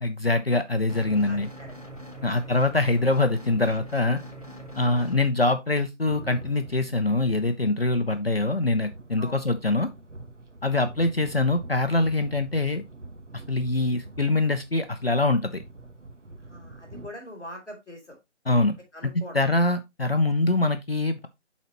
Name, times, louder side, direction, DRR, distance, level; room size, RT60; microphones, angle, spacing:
voice 1, 0.0-1.5 2.2-4.2 4.8-9.9 10.6-12.8 13.5-15.6 18.5-18.7 19.0-21.3, left 2 dB, 55° left, 8 dB, 0.6 m, -24 dB
sound 1, 0.9-5.3, right 1 dB, 30° right, 1.8 m, -42 dB
voice 2, 1.3-1.7 4.8-5.0 8.1-8.2 9.2-9.4 16.4-18.2 18.9-19.4, left 1 dB, ahead, -21 dB, 2.4 m, -43 dB
sound 2, 6.0-17.1, right 2 dB, 75° right, 1.3 m, -45 dB
11.5 x 4.1 x 2.9 m, 0.21 s
figure-of-eight pair, 170°, 36 cm